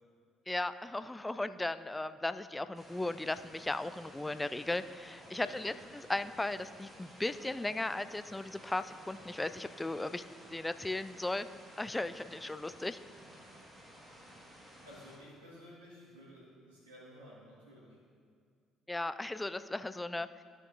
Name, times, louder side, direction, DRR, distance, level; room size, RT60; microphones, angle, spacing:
voice 1, 0.5-10.2 10.5-11.5 11.8-13.0 18.9-20.4, left 2 dB, 15° left, 13 dB, 0.4 m, -36 dB
sound 1, 2.7-15.2, equal, 20° right, 1.9 m, -54 dB
voice 2, 5.4-5.8 14.8-18.0, equal, 85° right, -7 dB, 2.1 m, -53 dB
13.5 x 5.9 x 2.7 m, 2.1 s
figure-of-eight pair, 50°, 0 cm